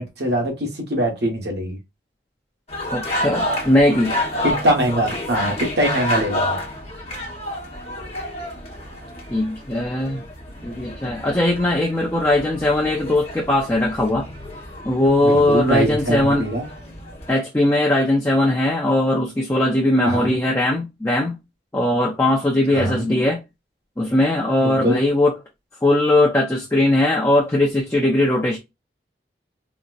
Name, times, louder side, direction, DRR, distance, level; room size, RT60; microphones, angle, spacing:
voice 1, 0.0-1.8 4.4-6.6 15.2-16.7 20.0-20.3 22.7-23.0 24.6-25.0, right 1 dB, 70° right, 1.1 m, -22 dB
sound 1, 2.7-17.3, left 1 dB, 35° left, 1.0 m, -30 dB
voice 2, 2.9-4.1 9.3-10.2 10.6-14.3 14.8-16.5 17.3-21.4 21.7-23.4 24.0-25.3 25.8-28.6, left 1 dB, 15° left, 0.5 m, -19 dB
4.0 x 2.1 x 2.4 m
head